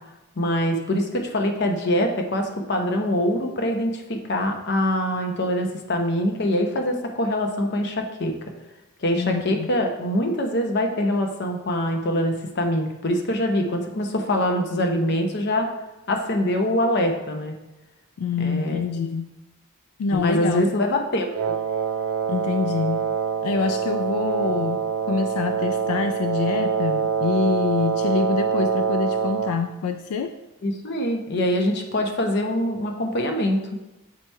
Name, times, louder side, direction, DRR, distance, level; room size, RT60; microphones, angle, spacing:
voice 1, 0.4-8.3 9.0-15.7 16.1-17.5 18.4-18.8 20.1-21.5 30.6-33.7, left 1 dB, 50° left, 3 dB, 0.7 m, -24 dB
voice 2, 9.2-9.7 18.2-19.4 20.0-20.6 22.3-23.1 23.4-30.3, left 5 dB, 80° left, 8 dB, 0.3 m, -26 dB
Wind instrument woodwind instrument, 21.3-29.6, right 6 dB, 80° right, 0.4 m, -25 dB
7.5 x 2.9 x 4.5 m, 1.0 s
head